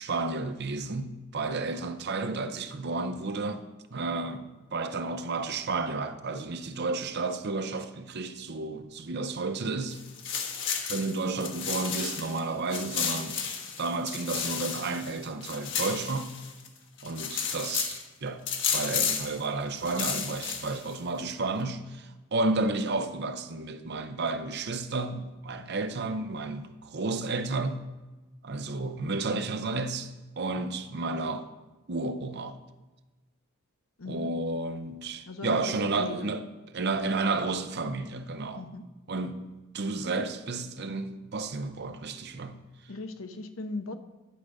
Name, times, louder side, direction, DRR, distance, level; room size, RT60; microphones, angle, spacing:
voice 1, 0.0-3.6 3.9-10.0 10.9-13.4 13.8-16.3 17.0-18.4 18.7-27.8 28.4-30.1 30.4-31.5 31.9-32.6 34.1-36.4 36.7-38.6 39.1-42.5, right 3 dB, 55° right, 0.7 m, -32 dB
sound 1, 9.9-12.4 12.7-16.7 17.0-18.0 18.5-19.4 19.8-20.9, left 7 dB, 60° left, 1.3 m, -32 dB
voice 2, 34.0-34.3 35.3-36.3 38.6-38.8 42.9-43.9, left 3 dB, 80° left, 0.9 m, -38 dB
11.0 x 5.0 x 6.3 m
head